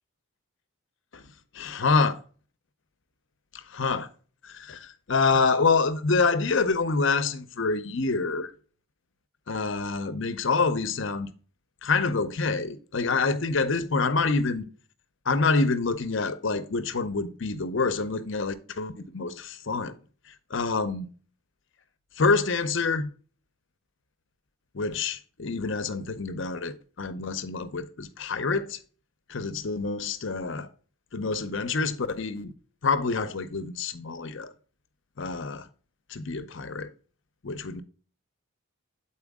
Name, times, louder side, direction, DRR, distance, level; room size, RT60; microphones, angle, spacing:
voice 1, 1.5-2.2 3.7-4.1 4.4-8.5 9.5-11.3 11.8-14.7 15.3-20.0 20.5-21.1 22.2-23.1 24.7-28.8 29.3-30.7 31.1-32.5 32.8-34.5 35.2-35.7 36.1-36.9 37.4-37.8, left 4 dB, 60° left, 0.7 m, -27 dB
8.1 x 4.4 x 3.5 m
head